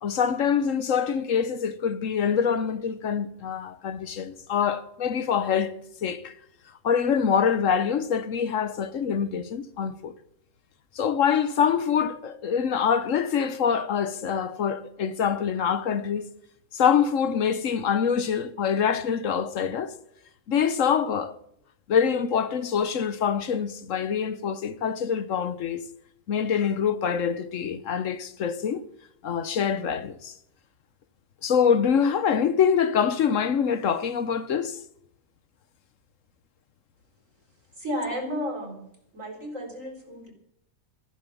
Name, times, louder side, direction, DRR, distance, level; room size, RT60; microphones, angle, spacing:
voice 1, 0.0-5.7 6.0-6.3 6.8-10.1 11.0-16.2 16.7-19.9 20.5-21.4 21.9-25.8 26.3-28.8 29.2-30.3 31.4-34.8, left 7 dB, 70° left, 1.2 m, -25 dB
voice 2, 37.7-38.9 39.1-40.3, equal, 65° right, 4.5 m, -32 dB
14.5 x 11.0 x 7.2 m
omnidirectional pair, 1.5 m